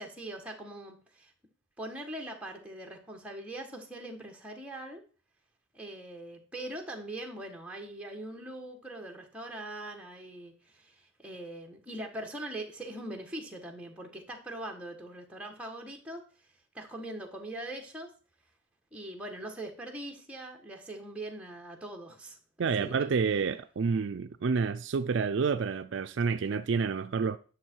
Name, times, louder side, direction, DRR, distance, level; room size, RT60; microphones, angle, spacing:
voice 1, 0.0-1.3 1.8-5.0 5.7-16.5 16.7-18.1 18.9-22.4 22.8-23.1, right 1 dB, 5° right, 1.5 m, -42 dB
voice 2, 22.6-27.4, right 5 dB, 60° right, 0.4 m, -29 dB
10.0 x 6.4 x 4.6 m
head